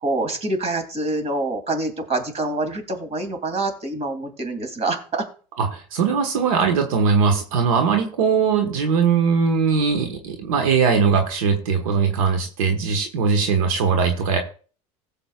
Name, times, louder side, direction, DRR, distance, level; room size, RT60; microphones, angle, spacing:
voice 1, 0.0-5.2, right 2 dB, 40° right, 6 dB, 2.7 m, -26 dB
voice 2, 5.6-14.4, right 5 dB, 90° right, 4 dB, 1.5 m, -20 dB
16.0 x 7.5 x 2.4 m, 0.40 s
supercardioid pair, 95°, 17 cm